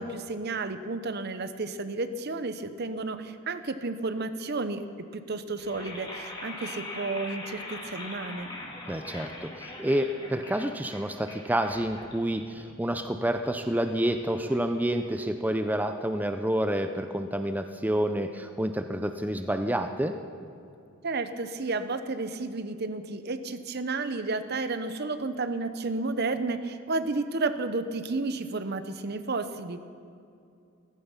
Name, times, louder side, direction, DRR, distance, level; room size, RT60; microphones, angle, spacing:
voice 1, 0.0-4.9 5.1-8.5 21.0-29.8, right 3 dB, 50° right, 11 dB, 0.8 m, -32 dB
sound 1, 5.5-15.6, left 2 dB, 20° left, 2.0 m, -43 dB
voice 2, 8.9-20.1, right 1 dB, 10° right, 7 dB, 0.5 m, -28 dB
15.0 x 14.5 x 5.7 m, 2.5 s
head